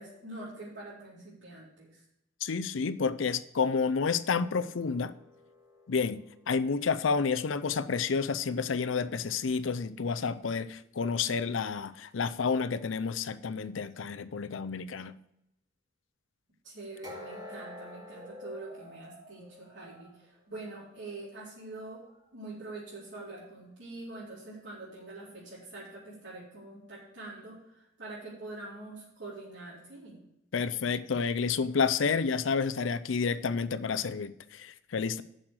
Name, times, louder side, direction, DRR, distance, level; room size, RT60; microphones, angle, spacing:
voice 1, 0.0-2.0 16.6-22.0 22.3-30.2, right 2 dB, 65° right, -10 dB, 4.2 m, -45 dB
voice 2, 2.4-5.1 5.9-6.2 6.5-15.2 30.5-35.2, left 5 dB, 80° left, 14 dB, 0.5 m, -30 dB
sound 1, 4.6-7.7 17.0-20.9 21.3-21.5 22.1-22.2, left 1 dB, 20° right, 2.6 m, -49 dB
7.5 x 6.4 x 7.9 m, 0.81 s
head